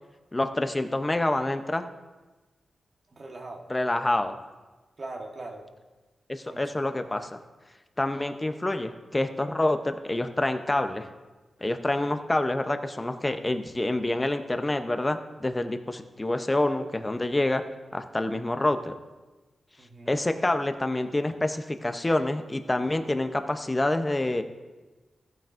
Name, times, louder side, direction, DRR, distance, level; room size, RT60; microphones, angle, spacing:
voice 1, 0.3-1.9 3.7-4.4 6.3-7.4 8.0-11.1 11.6-17.6 17.9-19.0 20.1-24.4, left 1 dB, 20° left, 8 dB, 0.7 m, -27 dB
voice 2, 3.1-3.6 5.0-5.6 6.4-6.6 19.8-20.2, right 2 dB, 50° right, 1 dB, 1.3 m, -40 dB
14.5 x 8.9 x 2.6 m, 1.2 s
cardioid pair, 75°, 0 cm